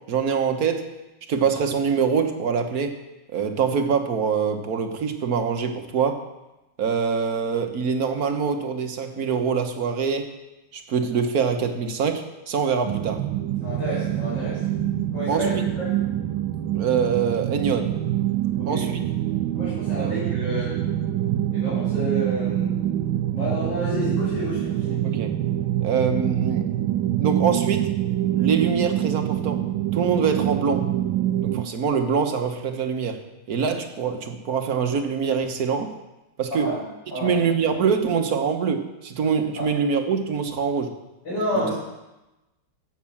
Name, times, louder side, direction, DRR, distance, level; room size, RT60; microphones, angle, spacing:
voice 1, 0.1-0.9 1.3-3.0 3.3-6.2 6.8-10.3 10.7-13.2 15.3-15.6 16.7-17.9 18.7-19.0 20.0-20.1 25.0-25.3 25.8-26.7 27.2-27.9 28.3-29.6 29.9-30.8 31.4-33.2 33.5-35.9 36.4-36.7 37.2-40.9 41.6-41.7, right 6 dB, 50° right, 6 dB, 1.4 m, -24 dB
sound 1, 12.9-31.6, right 12 dB, 75° right, 1.3 m, -25 dB
voice 2, 13.4-14.6 15.1-15.9 18.6-18.9 19.5-20.7 21.5-22.7 23.3-25.0 36.5-36.8 37.1-37.3 39.6-39.7 41.2-41.7, equal, 55° left, -11 dB, 6.3 m, -29 dB
12.0 x 8.6 x 7.2 m, 1.0 s
omnidirectional pair, 2.4 m